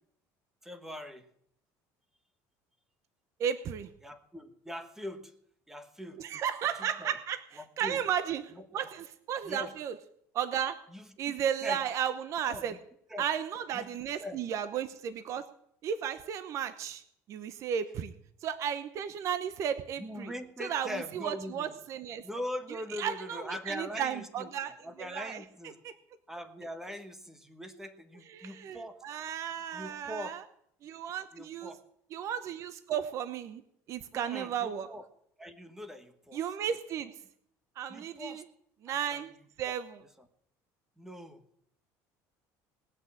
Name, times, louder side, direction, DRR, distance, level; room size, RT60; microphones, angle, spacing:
voice 1, 0.6-1.3 4.0-5.3 5.7-6.3 7.0-7.1 7.6-8.0 8.5-8.6 9.4-9.7 10.9-11.4 11.6-11.8 12.5-12.8 13.1-13.3 13.7-13.9 14.2-14.4 20.0-21.8 22.2-24.5 24.8-25.8 26.3-29.0 29.7-30.4 31.3-31.8 34.1-35.0 35.4-36.4 37.9-38.4 38.9-39.2 39.7-39.8 41.0-41.4, left 1 dB, 5° right, 9 dB, 1.1 m, -42 dB
voice 2, 3.4-3.9 6.2-10.0 10.3-10.8 11.2-12.8 13.2-15.4 15.8-17.0 17.3-18.1 18.4-20.3 20.6-22.2 23.0-24.7 25.0-25.4 25.8-25.9 28.3-30.4 30.8-31.7 32.1-33.6 33.9-34.9 36.3-37.1 37.8-38.4 38.8-39.3 39.6-40.0, right 9 dB, 45° right, 12 dB, 0.9 m, -34 dB
19.0 x 6.4 x 8.5 m, 0.70 s
cardioid pair, 145°, 7 cm